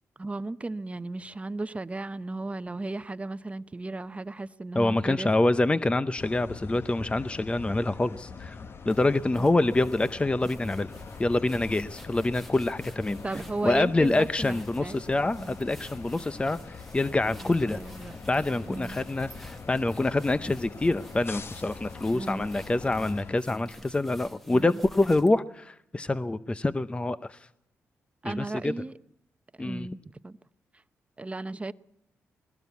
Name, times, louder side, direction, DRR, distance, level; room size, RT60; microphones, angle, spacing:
voice 1, 0.2-5.3 9.4-9.7 13.2-15.0 15.4-15.6 17.4-18.1 18.7-19.0 22.1-22.5 24.5-24.8 28.2-28.9 29.6-30.4 31.2-31.7, right 2 dB, 25° right, 0.8 m, -35 dB
voice 2, 4.7-10.9 11.2-17.8 18.3-27.5 28.2-28.7 29.6-29.9, left 2 dB, 20° left, 0.7 m, -26 dB
sound 1, 6.2-23.3, left 5 dB, 50° left, 0.9 m, -43 dB
sound 2, 8.9-25.4, equal, 5° left, 1.3 m, -51 dB
19.5 x 17.0 x 8.3 m
cardioid pair, 65°, 5 cm